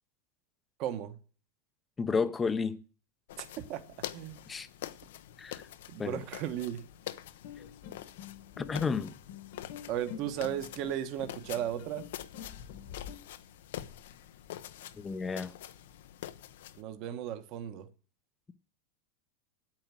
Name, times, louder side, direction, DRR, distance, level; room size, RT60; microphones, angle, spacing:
voice 1, 0.8-1.2 3.4-3.8 4.1-4.4 5.9-6.8 9.9-12.1 16.8-17.9, right 11 dB, 40° right, 1.2 m, -35 dB
voice 2, 2.0-2.8 4.5-4.7 5.4-5.6 6.0-6.2 8.6-9.1 14.9-15.5, left 5 dB, 15° left, 0.7 m, -31 dB
sound 1, 3.3-16.8, left 12 dB, 75° left, 0.8 m, -46 dB
sound 2, 7.4-13.1, left 9 dB, 55° left, 1.5 m, -47 dB
9.0 x 8.6 x 7.6 m
supercardioid pair, 165°, 0 cm